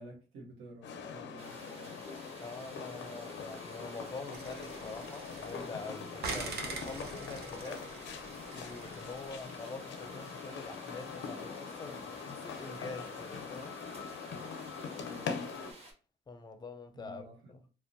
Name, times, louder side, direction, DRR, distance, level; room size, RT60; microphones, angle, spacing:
voice 1, 0.0-2.0 14.9-15.4 16.9-17.5, right 1 dB, 85° right, 0.9 m, -51 dB
sound 1, 0.8-15.7, left 5 dB, 70° left, 0.5 m, -43 dB
sound 2, 1.4-15.9, right 1 dB, 30° right, 0.9 m, -53 dB
voice 2, 2.4-7.9 8.5-13.8 16.3-17.6, left 3 dB, 20° left, 0.4 m, -45 dB
sound 3, 4.3-5.8 6.2-9.5, right 3 dB, 55° right, 0.6 m, -43 dB
2.5 x 2.1 x 2.5 m
cardioid pair, 90°, 20 cm